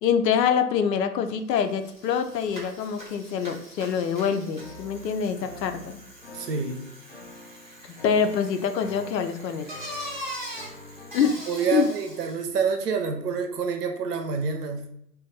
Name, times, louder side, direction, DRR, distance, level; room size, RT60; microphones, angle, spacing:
voice 1, 0.0-6.0 7.9-9.8 11.1-11.3 11.7-11.9, left 7 dB, 80° left, 8 dB, 0.5 m, -25 dB
Bicycle, 1.3-1.4 1.7-12.5, equal, 30° right, 0.4 m, -42 dB
sound 1, 4.6-11.4, left 2 dB, 35° left, 0.5 m, -46 dB
voice 2, 6.3-6.9 11.5-14.9, right 5 dB, 70° right, 5 dB, 0.7 m, -27 dB
2.5 x 2.2 x 3.8 m, 0.74 s
hypercardioid pair, 175°, 50 cm